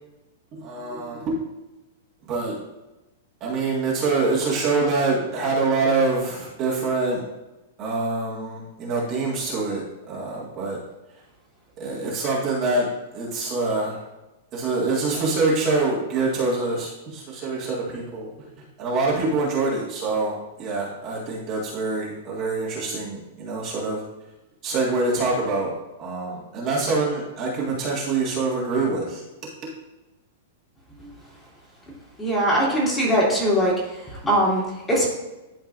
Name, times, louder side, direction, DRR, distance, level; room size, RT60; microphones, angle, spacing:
voice 1, 0.6-1.4 2.2-2.6 3.4-7.2 7.8-9.8 10.1-10.8 11.8-12.9 13.1-14.0 14.5-18.3 18.8-24.0 24.6-25.7 26.0-29.2, right 3 dB, 30° right, -5 dB, 1.8 m, -25 dB
voice 2, 32.2-33.7 34.2-35.1, equal, 15° left, -6 dB, 2.5 m, -21 dB
11.5 x 4.5 x 2.6 m, 1.0 s
supercardioid pair, 150°, 0 cm